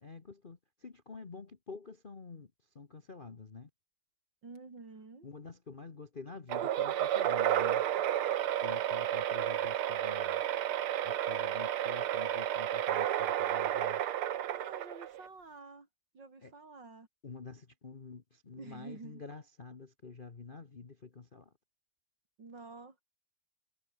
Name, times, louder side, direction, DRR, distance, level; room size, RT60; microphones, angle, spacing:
voice 1, 0.0-3.7 5.2-7.9 8.6-10.4 11.0-14.0 16.4-16.5 17.2-21.5, left 4 dB, 30° left, 1.2 m, -48 dB
voice 2, 4.4-5.3 14.5-15.9 16.1-17.1 18.6-19.2 22.4-23.0, right 3 dB, 55° right, 4.7 m, -49 dB
sound 1, 6.5-15.3, right 11 dB, 85° right, 2.0 m, -31 dB
omnidirectional pair, 2.3 m